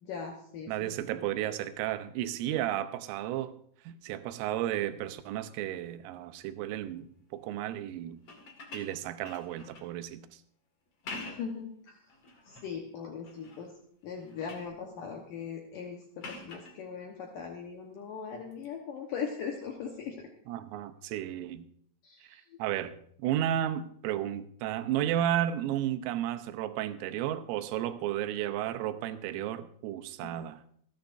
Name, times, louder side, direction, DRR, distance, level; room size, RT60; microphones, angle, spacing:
voice 1, 0.0-0.9 11.3-12.0 12.5-13.7 14.0-20.3 22.0-22.4 30.2-30.3, left 6 dB, 85° left, 1 dB, 1.9 m, -40 dB
voice 2, 0.7-3.6 3.9-7.1 7.3-8.2 8.7-10.2 20.5-21.7 22.3-30.6, right 12 dB, 90° right, 10 dB, 3.4 m, -33 dB
sound 1, 8.2-10.0 10.9-11.6 12.1-12.7 13.2-13.7 14.0-14.7 16.2-16.8 18.5-18.7, left 2 dB, 55° left, 1.7 m, -45 dB
27.5 x 10.5 x 2.6 m, 0.64 s
omnidirectional pair, 5.7 m